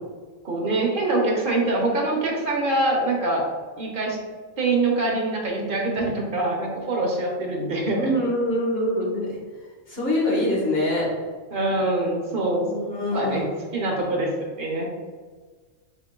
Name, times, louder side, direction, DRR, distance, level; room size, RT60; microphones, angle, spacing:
voice 1, 0.4-3.4 3.8-4.2 4.6-8.1 11.5-12.6 13.1-13.5 13.7-14.3 14.6-14.9, right 2 dB, 45° right, -1 dB, 0.9 m, -24 dB
voice 2, 8.0-9.3 9.9-11.1 12.6-13.5, left 1 dB, 50° left, -4 dB, 1.3 m, -24 dB
5.3 x 3.5 x 2.2 m, 1.5 s
omnidirectional pair, 1.4 m